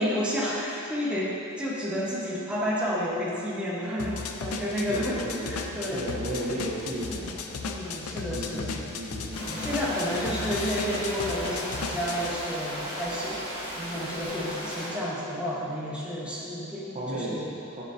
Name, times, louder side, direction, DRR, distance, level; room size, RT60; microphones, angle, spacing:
voice 1, 0.0-6.0 7.6-8.8 9.6-13.4 13.8-17.5, equal, 5° right, -6 dB, 1.1 m, -31 dB
sound 1, 4.0-12.3, left 4 dB, 70° left, 0.5 m, -35 dB
voice 2, 4.7-7.4 8.3-9.8 16.9-17.8, right 1 dB, 30° right, -5 dB, 0.9 m, -34 dB
sound 2, 9.3-14.9, equal, 25° left, 1.6 m, -35 dB
9.8 x 6.8 x 2.7 m, 2.6 s
head